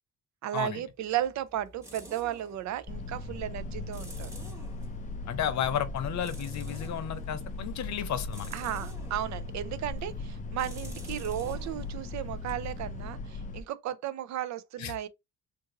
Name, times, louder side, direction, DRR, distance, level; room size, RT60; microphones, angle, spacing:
voice 1, 0.4-4.3 8.5-15.1, right 12 dB, 65° right, 0.5 m, -34 dB
sound 1, 0.9-13.5, right 1 dB, 10° right, 1.2 m, -51 dB
sound 2, 2.9-13.6, left 3 dB, 25° left, 0.4 m, -38 dB
voice 2, 5.3-8.5 14.8-15.1, left 9 dB, 65° left, 0.8 m, -33 dB
2.6 x 2.6 x 3.7 m
cardioid pair, 90°, 30 cm